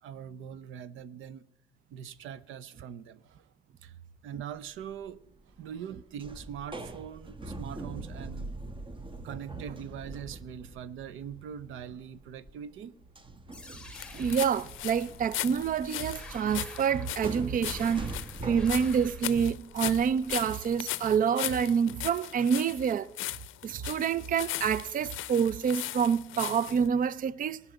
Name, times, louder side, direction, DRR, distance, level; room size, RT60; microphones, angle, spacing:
voice 1, 0.0-1.5 1.9-3.5 3.8-8.5 9.2-12.9, right 8 dB, 85° right, 0.7 m, -42 dB
sound 1, 4.8-5.1 5.4-5.9 6.2-12.8 13.1-20.8, right 2 dB, 25° right, 1.0 m, -43 dB
sound 2, 13.5-19.5, left 2 dB, 5° left, 1.4 m, -50 dB
sound 3, 13.9-26.9, left 16 dB, 80° left, 0.5 m, -38 dB
voice 2, 14.1-18.1 18.4-23.1 23.6-27.6, right 7 dB, 45° right, 0.5 m, -27 dB
17.0 x 6.0 x 9.0 m
cardioid pair, 90°, 20 cm